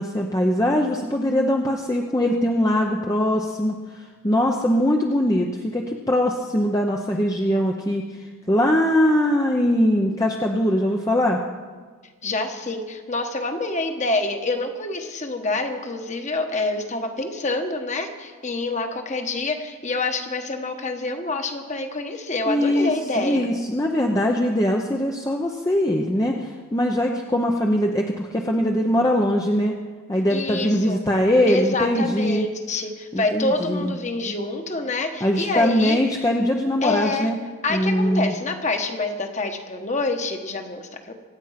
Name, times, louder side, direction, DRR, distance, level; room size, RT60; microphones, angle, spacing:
voice 1, 0.0-11.4 22.5-29.8 30.1-32.5 33.1-33.9 35.2-37.4 37.7-38.3, left 1 dB, 15° left, 1 dB, 0.8 m, -22 dB
voice 2, 12.2-23.5 30.3-31.0 31.5-36.0 36.8-37.3 37.6-41.1, left 2 dB, 30° left, 5 dB, 1.4 m, -27 dB
25.0 x 9.0 x 5.8 m, 1.5 s
head